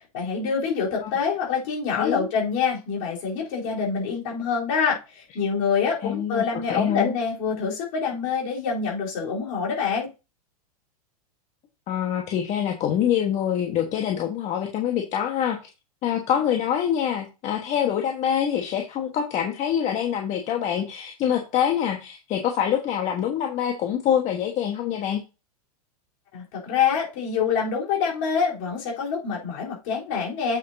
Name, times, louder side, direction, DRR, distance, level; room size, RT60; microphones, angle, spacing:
voice 1, 0.1-10.1 26.3-30.6, left 6 dB, 55° left, -3 dB, 3.8 m, -26 dB
voice 2, 2.0-2.3 6.0-7.1 11.9-15.6 16.0-25.2, left 9 dB, 35° left, 2 dB, 1.4 m, -25 dB
8.2 x 6.7 x 2.8 m, 0.28 s
hypercardioid pair, 105°, 20 cm